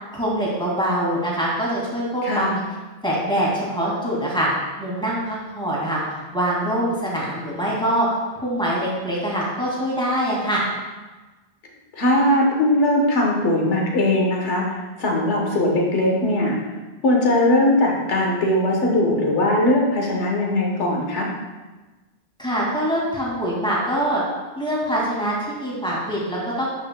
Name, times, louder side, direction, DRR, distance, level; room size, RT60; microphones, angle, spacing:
voice 1, 0.1-2.6 3.0-4.5 4.8-6.0 6.3-8.1 8.3-10.6 22.4-24.2 24.6-26.7, right 1 dB, 5° left, -5 dB, 2.1 m, -24 dB
voice 2, 2.2-2.6 12.0-16.6 17.0-21.3, left 1 dB, 85° left, -1 dB, 1.4 m, -20 dB
11.5 x 5.4 x 2.2 m, 1.2 s
omnidirectional pair, 1.2 m